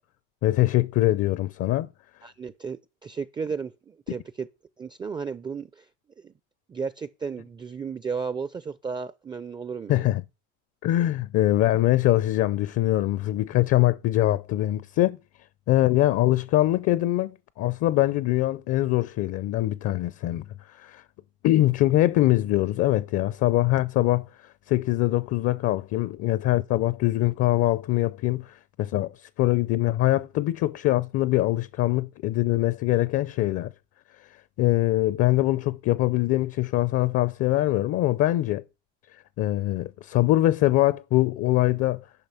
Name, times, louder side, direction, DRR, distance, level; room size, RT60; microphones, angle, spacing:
voice 1, 0.4-1.9 9.9-10.2 10.8-15.2 15.7-20.5 20.7-21.0 21.4-24.3 24.7-33.7 34.6-38.6 39.4-42.0, left 15 dB, 45° left, 0.5 m, -23 dB
voice 2, 2.2-4.5 4.8-5.9 6.2-6.3 6.7-10.1, right 5 dB, 15° right, 0.4 m, -34 dB
10.5 x 5.5 x 5.6 m
supercardioid pair, 115°, 33 cm